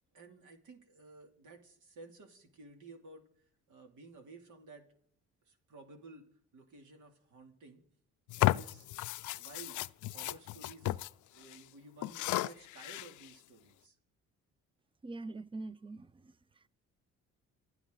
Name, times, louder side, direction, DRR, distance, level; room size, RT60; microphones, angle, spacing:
voice 1, 0.1-3.3 3.7-4.8 5.4-6.3 6.5-7.8 8.4-8.9 9.3-9.8 10.1-11.0 11.3-14.0, right 3 dB, 75° right, 2.8 m, -54 dB
sound 1, 8.3-11.1 11.4-11.6 12.0-13.3, left 16 dB, 80° left, 0.5 m, -34 dB
voice 2, 15.0-16.7, right 2 dB, 15° right, 0.5 m, -44 dB
28.0 x 9.4 x 3.9 m
cardioid pair, 90°, 30 cm